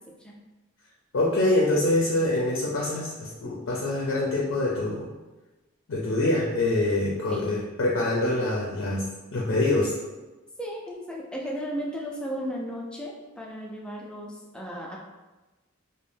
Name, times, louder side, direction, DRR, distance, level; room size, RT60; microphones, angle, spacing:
voice 1, 1.1-5.1 5.9-9.9, left 2 dB, 70° left, -3 dB, 0.5 m, -25 dB
voice 2, 10.6-15.0, equal, 5° left, -3 dB, 0.4 m, -35 dB
2.5 x 2.1 x 3.3 m, 1.1 s
head